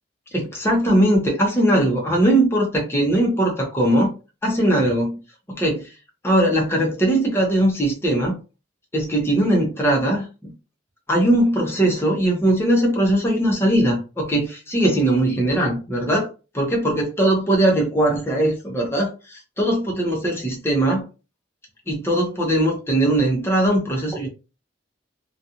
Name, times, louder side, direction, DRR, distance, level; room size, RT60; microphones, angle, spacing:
voice 1, 0.3-4.1 4.4-5.2 5.5-5.9 6.2-8.4 8.9-10.5 11.1-16.3 16.5-21.1 21.9-24.3, right 1 dB, 15° left, 0.7 m, -20 dB
2.4 x 2.3 x 2.8 m
head